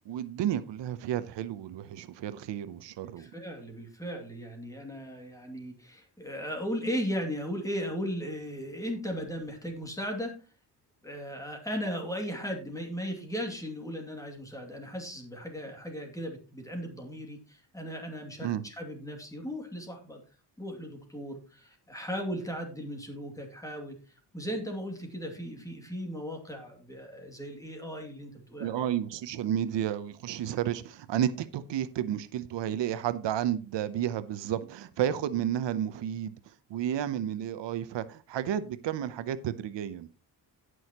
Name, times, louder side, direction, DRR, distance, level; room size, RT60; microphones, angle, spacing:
voice 1, 0.1-3.3 18.4-18.6 28.6-40.1, right 10 dB, 90° right, 0.8 m, -32 dB
voice 2, 3.0-10.4 11.0-20.2 20.6-24.0 24.3-28.7, equal, 10° left, 2.4 m, -37 dB
17.5 x 6.3 x 3.0 m
wide cardioid pair, 150°, 42 cm